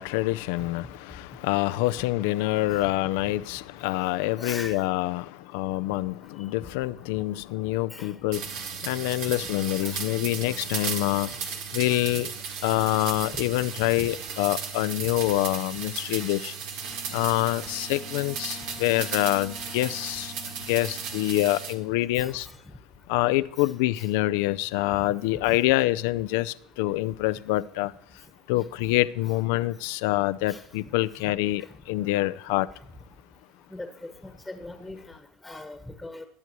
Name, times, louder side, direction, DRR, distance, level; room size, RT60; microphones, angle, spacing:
voice 1, 0.0-11.3 11.7-12.3 12.6-16.5 17.1-20.3 20.7-22.5 23.1-27.9 28.5-32.7, left 17 dB, 80° left, 0.5 m, -26 dB
voice 2, 4.4-4.8 7.9-8.1 9.8-10.1 12.6-12.7 14.0-14.1 17.3-17.4 18.2-18.3 19.9-20.1 22.2-22.5 24.0-24.1 25.4-25.6 30.5-30.6 33.7-36.2, left 2 dB, 5° left, 1.5 m, -41 dB
sound 1, 8.3-21.7, right 6 dB, 70° right, 1.9 m, -35 dB
Wind instrument woodwind instrument, 16.8-22.3, left 8 dB, 35° left, 1.1 m, -48 dB
19.5 x 8.2 x 3.1 m
supercardioid pair, 100°, 0 cm